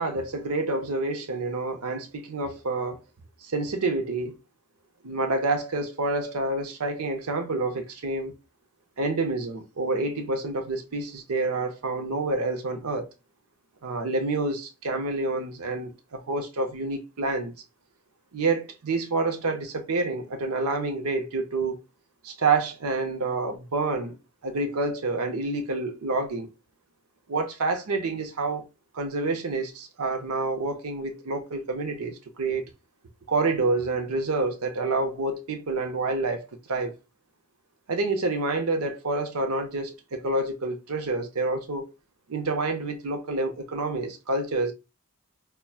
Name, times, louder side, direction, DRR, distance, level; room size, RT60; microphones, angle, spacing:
voice 1, 0.0-3.0 3.4-4.4 5.0-8.4 9.0-13.1 13.8-17.5 18.3-21.8 22.2-24.2 24.4-26.5 27.3-28.6 28.9-32.7 33.3-36.9 37.9-41.9 42.3-44.7, right 3 dB, 80° right, 0.7 m, -28 dB
5.6 x 2.1 x 2.3 m
head